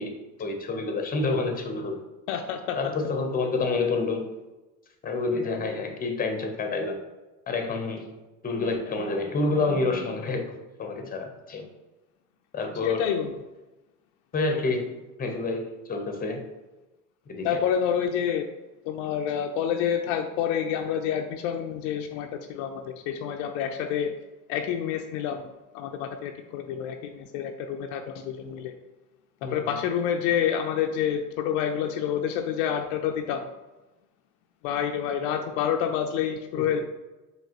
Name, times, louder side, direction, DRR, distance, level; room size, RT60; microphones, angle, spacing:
voice 1, 0.0-2.0 2.8-4.3 5.0-7.0 7.5-8.1 8.4-11.7 12.5-13.1 14.3-14.9 15.2-16.4 17.3-17.6 29.4-29.6 36.5-36.8, left 3 dB, 20° left, 4 dB, 0.8 m, -28 dB
voice 2, 2.3-2.8 12.8-13.3 17.4-18.5 18.9-24.1 24.5-25.5 25.7-28.7 29.5-33.4 34.6-36.8, left 8 dB, 65° left, 5 dB, 0.5 m, -28 dB
4.7 x 2.9 x 2.9 m, 1.1 s
hypercardioid pair, 80°, 45 cm